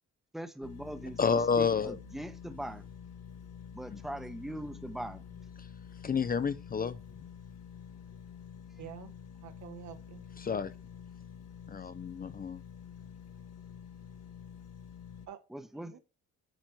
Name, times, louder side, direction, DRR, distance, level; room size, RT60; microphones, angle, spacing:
voice 1, 0.3-2.8 3.7-5.4 15.5-16.0, right 1 dB, ahead, 0.9 m, -41 dB
sound 1, 0.6-15.3, left 7 dB, 60° left, 1.4 m, -48 dB
voice 2, 1.2-2.0 3.9-4.0 6.0-7.0 10.4-10.7 11.7-12.6, left 6 dB, 30° left, 0.5 m, -30 dB
voice 3, 8.8-9.1 9.4-10.3 15.3-15.4 15.7-16.0, right 10 dB, 70° right, 1.3 m, -47 dB
9.1 x 4.5 x 4.6 m
cardioid pair, 90°, 30 cm